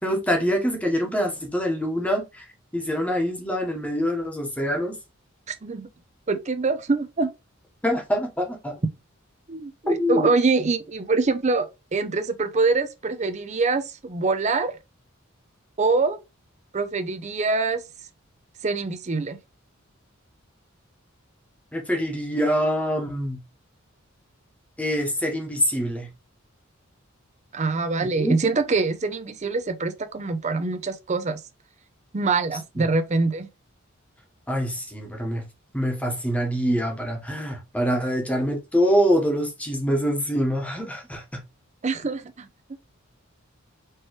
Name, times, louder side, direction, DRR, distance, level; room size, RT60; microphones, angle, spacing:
voice 1, 0.0-2.5 2.7-4.9 7.8-8.7 9.9-10.3 21.7-23.4 24.8-26.1 28.2-28.4 32.8-32.9 34.5-35.4 35.7-41.4, equal, 5° left, 1.1 m, -25 dB
voice 2, 5.5-5.9 6.3-7.3 9.5-14.7 15.8-16.2 16.7-17.8 18.6-19.4 27.5-31.4 32.1-33.5 41.8-42.5, right 3 dB, 35° right, 0.5 m, -24 dB
4.5 x 3.1 x 3.1 m
head